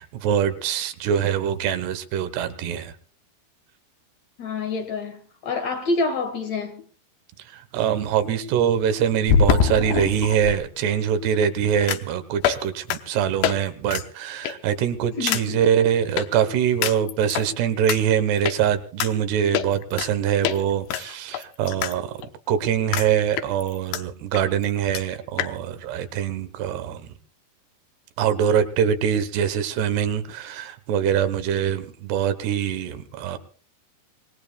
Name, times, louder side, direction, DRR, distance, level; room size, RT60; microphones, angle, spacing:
voice 1, 0.0-2.9 7.5-22.2 22.5-27.1 28.2-33.4, right 9 dB, 90° right, 3.4 m, -23 dB
voice 2, 4.4-6.8 15.2-15.6, left 3 dB, 55° left, 2.3 m, -27 dB
sound 1, 6.8-6.9 9.3-10.6 11.9-12.1 12.4-12.6 12.9-13.0 13.4-13.6 13.9-14.0 14.4-14.7 15.3-15.4 16.2-16.3 16.8-17.5 17.9-18.0 18.4-18.6 19.0-19.1 19.5-20.1 20.4-20.6 20.9-21.9 22.2-22.3 22.9-23.1 23.4-24.0 24.3-24.4 24.6-24.7 24.9-25.0 25.4-25.5, left 7 dB, 80° left, 3.0 m, -23 dB
26.5 x 19.5 x 2.3 m
omnidirectional pair, 4.6 m